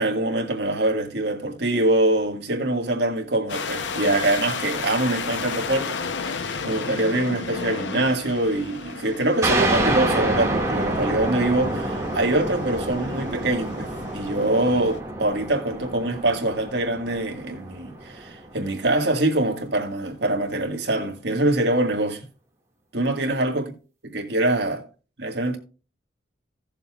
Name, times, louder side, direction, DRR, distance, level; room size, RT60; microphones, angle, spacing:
voice 1, 0.0-22.2 22.9-23.7 24.0-24.8 25.2-25.6, right 2 dB, 70° right, 1.8 m, -24 dB
sound 1, 3.5-15.0, left 5 dB, 85° left, 0.7 m, -33 dB
sound 2, 9.4-18.6, right 1 dB, 15° right, 1.9 m, -27 dB
16.5 x 6.9 x 2.4 m
head